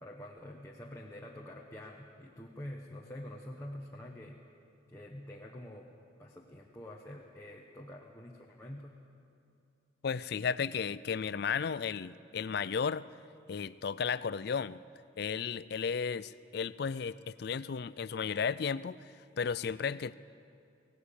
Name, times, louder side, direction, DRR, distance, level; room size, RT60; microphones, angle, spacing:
voice 1, 0.0-4.4 4.9-5.9 6.2-8.9, left 1 dB, 15° left, -1 dB, 1.1 m, -46 dB
voice 2, 10.0-13.1 13.5-14.8 15.2-19.0 19.4-20.1, left 6 dB, 50° left, 17 dB, 0.4 m, -34 dB
18.0 x 17.5 x 8.5 m, 2.5 s
head